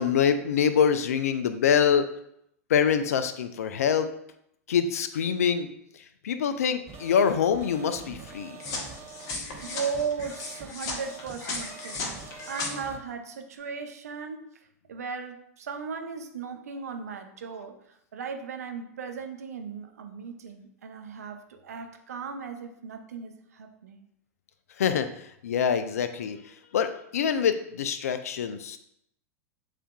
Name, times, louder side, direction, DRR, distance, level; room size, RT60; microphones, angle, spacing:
voice 1, 0.0-2.1 2.7-4.1 4.7-5.7 6.2-8.6 24.8-25.1 25.4-28.8, left 7 dB, 75° left, 10 dB, 0.4 m, -25 dB
sound 1, 6.9-13.0, right 5 dB, 30° right, 0.5 m, -45 dB
sound 2, 8.6-12.7, left 3 dB, 45° left, 0.9 m, -36 dB
voice 2, 9.6-12.2 12.5-14.4 14.9-24.1, right 5 dB, 75° right, 6 dB, 0.5 m, -37 dB
6.8 x 2.5 x 2.2 m, 0.74 s
hypercardioid pair, 95°, 8 cm